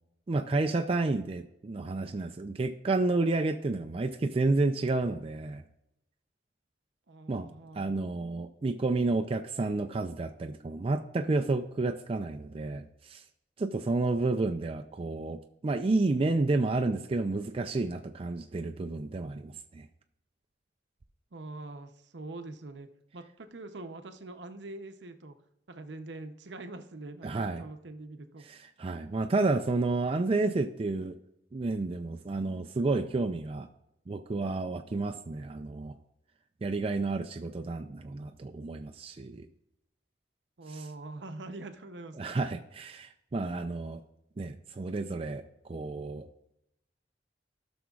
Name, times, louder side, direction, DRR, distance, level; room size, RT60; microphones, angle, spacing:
voice 1, 0.3-5.6 7.3-7.5 7.8-13.2 13.6-19.9 27.2-27.7 28.4-31.2 31.5-33.7 34.1-36.0 36.6-39.5 40.7-40.9 42.2-44.0 44.4-45.4 45.7-46.3, right 3 dB, 30° right, 5 dB, 0.4 m, -30 dB
voice 2, 7.1-7.9 21.3-22.9 23.1-25.4 25.7-28.5 40.6-42.2, right 2 dB, 75° right, 8 dB, 0.7 m, -44 dB
16.5 x 6.1 x 2.4 m, 0.83 s
head